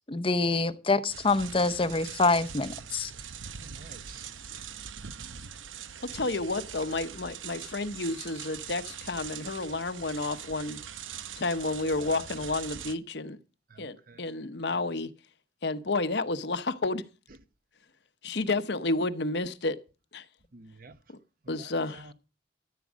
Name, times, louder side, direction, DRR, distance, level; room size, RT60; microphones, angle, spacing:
voice 1, 0.1-3.1, left 3 dB, 30° left, 0.7 m, -26 dB
sound 1, 1.1-12.9, right 8 dB, 85° right, 0.9 m, -42 dB
voice 2, 3.6-4.3 13.7-14.2 14.7-14.8 20.5-21.0 21.6-22.1, right 3 dB, 45° right, 1.0 m, -51 dB
voice 3, 6.1-10.8 11.4-13.4 13.8-15.1 15.6-17.0 18.2-19.8 20.1-20.2 21.5-22.1, left 2 dB, 60° left, 0.9 m, -31 dB
14.0 x 8.5 x 6.2 m
head